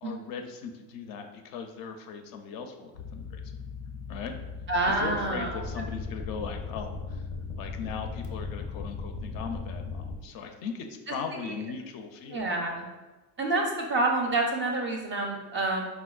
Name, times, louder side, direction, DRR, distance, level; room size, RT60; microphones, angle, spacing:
voice 1, 0.0-3.4 4.1-4.3 4.9-7.2 7.6-12.5, left 6 dB, 45° left, 5 dB, 0.5 m, -38 dB
sound 1, 2.9-10.2, left 4 dB, 90° left, 0.7 m, -38 dB
voice 2, 4.7-5.9 11.4-11.5 12.3-12.9 13.4-15.9, right 2 dB, 25° right, 1 dB, 0.4 m, -28 dB
4.4 x 2.1 x 2.3 m, 1.1 s
hypercardioid pair, 80°, 47 cm